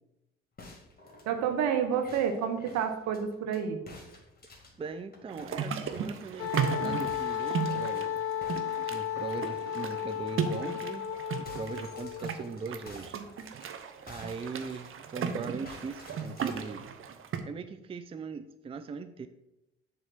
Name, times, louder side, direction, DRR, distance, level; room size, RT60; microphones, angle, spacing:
sound 1, 0.6-3.6 3.9-6.7 7.1-8.0 8.4-10.2 10.6-10.7 11.0-15.3 15.6-16.8, left 3 dB, 30° left, 2.3 m, -52 dB
voice 1, 1.3-3.8, right 7 dB, 65° right, 6 dB, 1.1 m, -29 dB
voice 2, 4.8-8.2 8.8-11.1 11.4-13.2 14.0-16.8 17.4-19.3, right 4 dB, 20° right, 10 dB, 0.4 m, -40 dB
sound 2, 5.3-17.4, right 7 dB, 45° right, 0.8 m, -36 dB
Wind instrument woodwind instrument, 6.4-12.3, left 9 dB, 50° left, 0.6 m, -34 dB
7.2 x 3.5 x 5.7 m, 0.92 s
hypercardioid pair, 55°, 29 cm